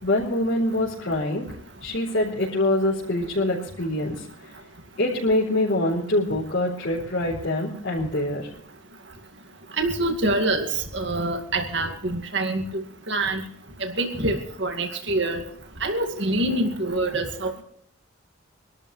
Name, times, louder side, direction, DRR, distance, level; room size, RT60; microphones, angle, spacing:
voice 1, 0.0-1.5 1.8-4.2 5.0-8.5, left 1 dB, 65° left, -6 dB, 4.2 m, -24 dB
voice 2, 9.8-10.7 10.9-13.4 13.8-15.4 15.8-17.6, right 2 dB, 55° right, 4 dB, 2.2 m, -25 dB
25.5 x 12.5 x 3.3 m, 0.62 s
head